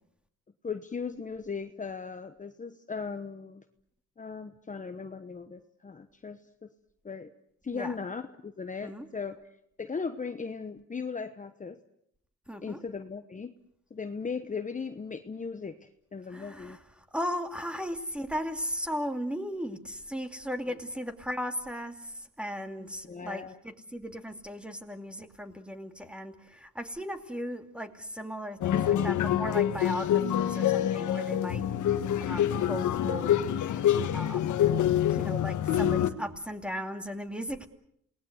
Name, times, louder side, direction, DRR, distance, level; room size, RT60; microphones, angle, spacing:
voice 1, 0.6-3.6 4.2-6.7 7.0-7.3 7.6-9.4 9.8-11.8 12.6-13.5 13.9-16.8 20.7-20.8 22.8-23.6, left 5 dB, 25° left, 8 dB, 1.1 m, -38 dB
voice 2, 12.5-12.8 16.3-16.8 17.1-31.6 32.2-34.5 35.1-37.7, equal, 5° right, 7 dB, 2.6 m, -37 dB
sound 1, 28.6-36.1, left 10 dB, 80° left, 1.6 m, -26 dB
28.5 x 19.5 x 8.0 m, 0.71 s
cardioid pair, 90°, 30 cm